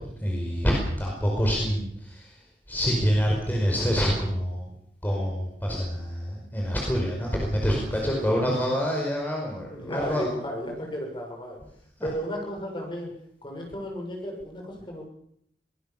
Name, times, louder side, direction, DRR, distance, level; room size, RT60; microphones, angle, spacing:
voice 1, 0.2-2.3 2.7-4.7 5.0-10.3 12.0-12.1, equal, 10° left, -1 dB, 5.0 m, -26 dB
voice 2, 9.7-11.6 12.0-13.1 13.4-15.0, equal, 30° left, 1 dB, 7.3 m, -34 dB
23.5 x 20.0 x 7.2 m, 0.71 s
head